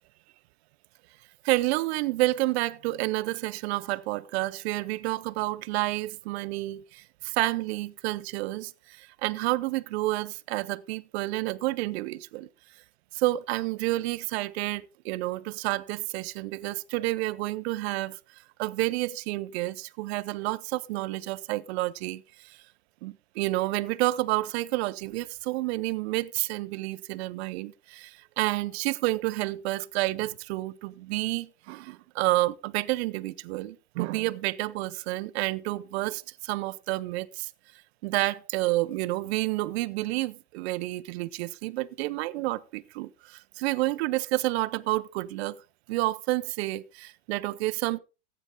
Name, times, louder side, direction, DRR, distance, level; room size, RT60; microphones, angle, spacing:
voice 1, 1.4-8.7 9.0-12.5 13.1-18.2 18.6-22.6 23.0-37.5 38.0-45.6 45.9-48.0, right 19 dB, 65° right, 0.9 m, -29 dB
15.0 x 9.0 x 3.8 m
supercardioid pair, 140°, 35 cm